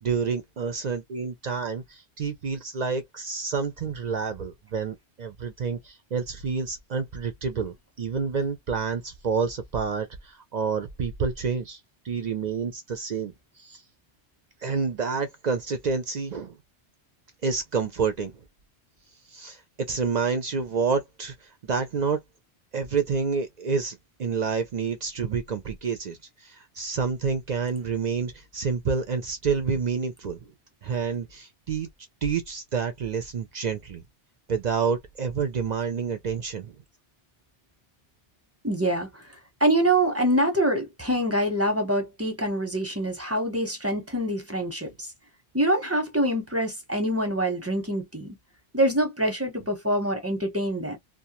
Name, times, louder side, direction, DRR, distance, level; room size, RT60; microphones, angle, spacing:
voice 1, 0.0-11.8 12.0-13.3 13.6-13.8 14.6-16.6 17.4-18.4 19.3-22.2 22.7-30.5 30.8-31.9 32.2-34.0 34.5-36.8, right 5 dB, 55° right, 0.5 m, -28 dB
voice 2, 38.6-39.3 39.6-45.1 45.5-48.4 48.7-51.0, right 1 dB, 15° right, 0.7 m, -25 dB
2.3 x 2.2 x 2.8 m
omnidirectional pair, 1.1 m